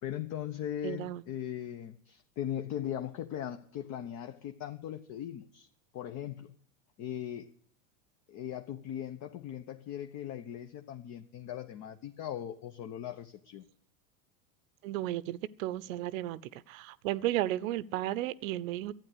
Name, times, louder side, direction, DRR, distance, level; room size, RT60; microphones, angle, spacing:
voice 1, 0.0-5.7 5.9-6.5 7.0-7.5 8.3-13.7, left 10 dB, 45° left, 1.0 m, -39 dB
voice 2, 0.8-1.2 14.8-16.4 16.7-18.9, right 14 dB, 80° right, 0.8 m, -33 dB
12.0 x 9.1 x 8.0 m
supercardioid pair, 115°, 40 cm